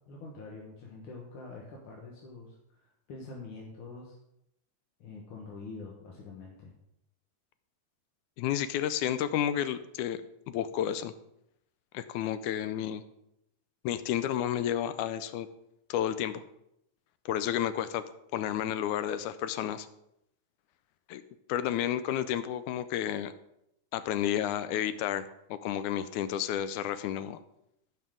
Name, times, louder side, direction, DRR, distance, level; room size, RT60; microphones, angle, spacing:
voice 1, 0.1-4.2 5.0-6.7, left 3 dB, 55° left, -2 dB, 1.6 m, -45 dB
voice 2, 8.4-11.1 11.9-13.0 13.8-15.5 15.9-16.4 17.3-18.0 18.3-19.9 21.1-21.2 21.5-23.3 23.9-27.4, left 10 dB, 80° left, 12 dB, 1.9 m, -31 dB
15.0 x 5.7 x 3.7 m, 0.81 s
omnidirectional pair, 3.7 m